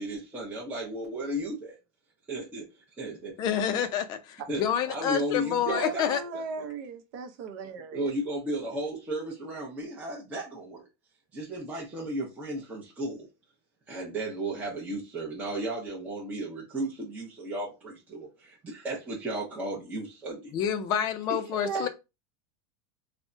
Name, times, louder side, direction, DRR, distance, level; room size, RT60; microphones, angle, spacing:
voice 1, 0.0-1.7 2.3-2.7 3.0-3.3 4.5-6.4 7.9-10.9 11.3-13.3 13.9-20.5 21.5-21.6, right 1 dB, 10° right, 0.6 m, -34 dB
voice 2, 3.4-6.2 20.5-21.9, left 8 dB, 30° left, 0.4 m, -28 dB
voice 3, 5.7-8.1 21.6-21.9, right 4 dB, 55° right, 0.6 m, -36 dB
3.4 x 2.1 x 2.5 m
supercardioid pair, 165°, 14 cm